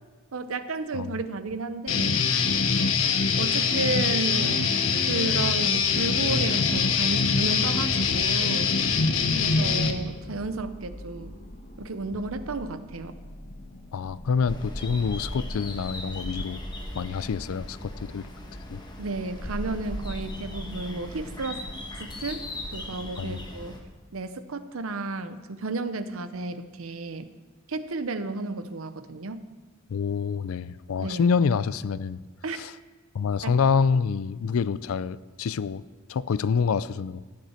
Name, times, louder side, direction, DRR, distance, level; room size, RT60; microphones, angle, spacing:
voice 1, 0.3-2.2 3.4-4.7 5.1-8.7 9.3-11.3 11.8-13.2 19.0-21.6 22.0-22.4 22.7-23.7 24.1-27.3 27.7-29.5 31.0-31.3 32.4-32.6 33.4-33.6, right 3 dB, 80° right, 11 dB, 0.8 m, -32 dB
Guitar, 1.9-9.9, left 5 dB, 70° left, 0.9 m, -23 dB
sound 1, 4.3-17.9 18.4-18.5, left 1 dB, 45° left, 1.3 m, -44 dB
voice 2, 13.9-16.6 17.0-18.3 18.7-18.8 23.2-23.4 29.9-32.2 32.5-32.7 33.1-35.8 36.1-37.2, left 5 dB, 85° left, 18 dB, 0.4 m, -27 dB
sound 2, 14.5-23.8, left 1 dB, 20° left, 1.2 m, -37 dB
15.5 x 9.6 x 4.4 m, 1.3 s
head